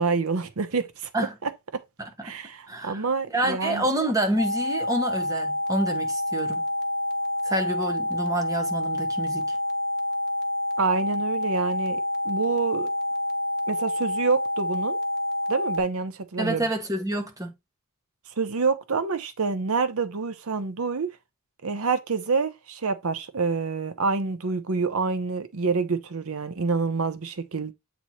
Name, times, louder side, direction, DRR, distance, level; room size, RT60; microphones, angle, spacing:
voice 1, 0.0-1.1 1.4-1.8 2.2-3.9 10.8-12.0 12.2-12.9 13.7-15.0 15.5-16.6 18.4-21.1 21.6-27.7, right 4 dB, 70° right, 0.8 m, -27 dB
voice 2, 2.0-2.4 2.7-3.0 3.3-6.6 7.4-9.6 16.4-17.5, right 1 dB, 15° right, 1.2 m, -28 dB
sound 1, 4.4-15.8, left 1 dB, 50° left, 0.9 m, -28 dB
7.8 x 3.1 x 4.2 m
head